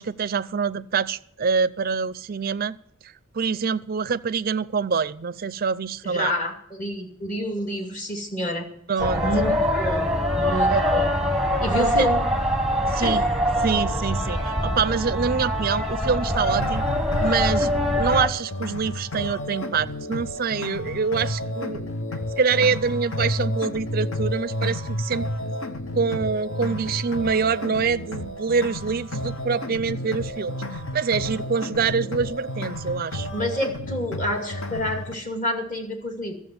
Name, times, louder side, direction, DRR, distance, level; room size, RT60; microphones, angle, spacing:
voice 1, 0.0-2.8 3.0-6.3 8.9-9.3 10.7-10.8 11.3-11.5 11.8-12.1 12.8-13.3 13.6-16.9 17.2-21.9 22.4-25.3 25.9-33.3, right 5 dB, 40° right, 0.4 m, -25 dB
voice 2, 6.0-8.7 9.2-10.1 10.4-11.1 11.6-12.3 13.0-13.2 33.3-36.3, equal, 35° left, 2.5 m, -28 dB
sound 1, 9.0-18.3, equal, ahead, 1.0 m, -23 dB
sound 2, 16.3-35.1, left 1 dB, 65° left, 1.0 m, -31 dB
13.5 x 7.3 x 9.4 m
head